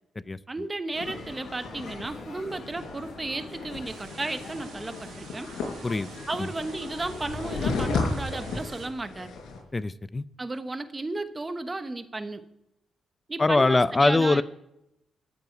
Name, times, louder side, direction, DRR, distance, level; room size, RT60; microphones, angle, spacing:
voice 1, 0.5-5.5 6.3-9.3 10.4-12.4 13.3-14.4, right 2 dB, 20° right, 9 dB, 1.1 m, -34 dB
sound 1, 0.9-9.6, left 4 dB, 80° left, 4.9 m, -35 dB
sound 2, 0.9-8.9, left 2 dB, 60° left, 7.4 m, -43 dB
sound 3, 3.9-8.9, right 7 dB, 80° right, 1.9 m, -50 dB
voice 2, 9.7-10.2 13.4-14.4, left 2 dB, 20° left, 15 dB, 0.5 m, -22 dB
14.5 x 7.8 x 9.3 m, 0.84 s
cardioid pair, 125°, 0 cm